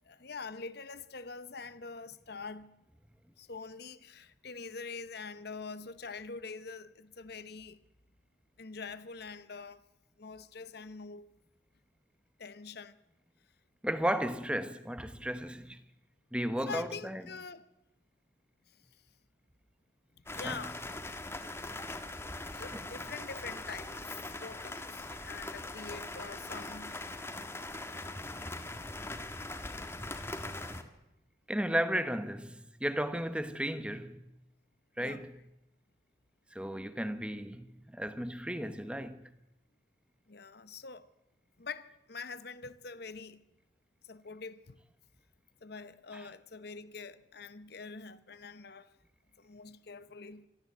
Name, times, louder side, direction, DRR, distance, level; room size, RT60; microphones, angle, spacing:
voice 1, 0.1-2.8 3.4-7.8 8.6-9.8 10.2-11.3 12.4-13.0 16.7-17.7 20.3-20.8 22.5-27.0 35.0-35.2 40.3-41.1 41.6-43.4 44.0-44.8 45.6-48.9 49.4-50.5, left 4 dB, 55° left, 1.0 m, -45 dB
voice 2, 13.8-15.8 16.3-17.2 20.4-20.7 22.7-22.8 29.8-29.9 31.5-34.2 35.0-35.3 36.5-39.2 46.1-46.2, equal, 5° right, 1.0 m, -34 dB
sound 1, 20.3-30.8, left 2 dB, 15° left, 1.4 m, -41 dB
24.5 x 13.5 x 8.0 m
head